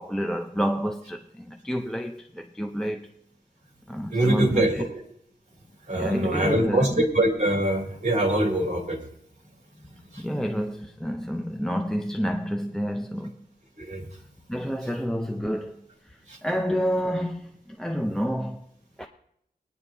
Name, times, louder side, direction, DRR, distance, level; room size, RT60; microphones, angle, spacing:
voice 1, 0.0-3.1 3.9-4.9 5.9-7.0 10.2-13.4 14.5-15.8 16.4-18.6 19.0-19.1, equal, 5° left, 0.6 m, -29 dB
voice 2, 4.1-4.9 5.9-9.0 10.1-10.2 13.8-14.0 16.3-16.4, right 1 dB, 45° right, 2.9 m, -24 dB
20.0 x 9.9 x 2.7 m
wide cardioid pair, 100°, 17 cm